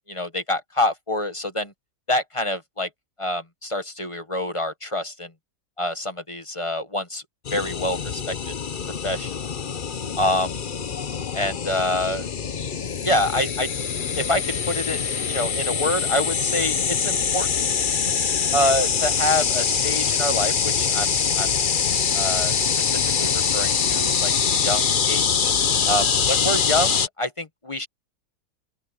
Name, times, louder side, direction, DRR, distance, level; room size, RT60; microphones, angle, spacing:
voice 1, 0.1-1.7 2.1-2.9 3.2-5.3 5.8-7.2 7.5-8.5 9.0-9.3 10.2-10.5 11.3-12.3 13.0-13.7 14.2-17.7 18.5-21.5 22.1-24.3 24.6-25.5 25.9-27.9, left 1 dB, 20° left, 1.4 m, -26 dB
sound 1, 7.4-27.1, left 6 dB, 40° left, 0.8 m, -24 dB
open air
omnidirectional pair, 1.7 m